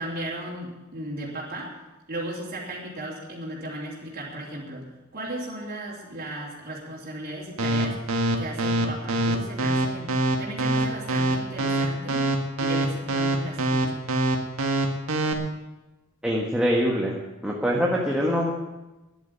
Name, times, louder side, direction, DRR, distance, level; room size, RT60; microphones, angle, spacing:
voice 1, 0.0-1.7 2.1-4.8 5.1-8.0 8.4-12.3 12.6-14.1, right 1 dB, 45° right, -5 dB, 3.2 m, -36 dB
sound 1, 7.6-15.3, right 2 dB, 75° right, 1.7 m, -23 dB
voice 2, 16.2-17.2 17.4-18.5, equal, 5° right, -3 dB, 1.4 m, -23 dB
10.5 x 8.6 x 9.9 m, 1.1 s
head